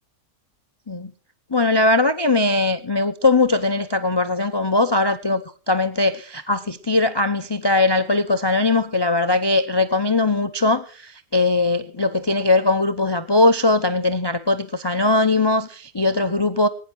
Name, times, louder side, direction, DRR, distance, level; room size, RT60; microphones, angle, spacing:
voice 1, 1.5-5.4 5.7-16.7, left 2 dB, 35° left, 0.4 m, -20 dB
21.0 x 10.0 x 4.6 m
omnidirectional pair, 1.8 m